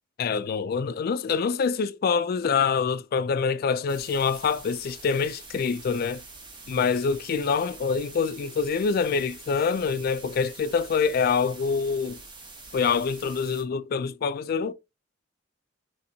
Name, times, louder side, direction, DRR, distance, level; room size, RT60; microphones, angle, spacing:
voice 1, 0.2-6.2 6.7-12.2 12.7-14.7, left 5 dB, 50° left, 0.3 m, -25 dB
sound 1, 3.9-13.6, right 3 dB, 25° right, 0.9 m, -45 dB
4.2 x 3.1 x 2.7 m
head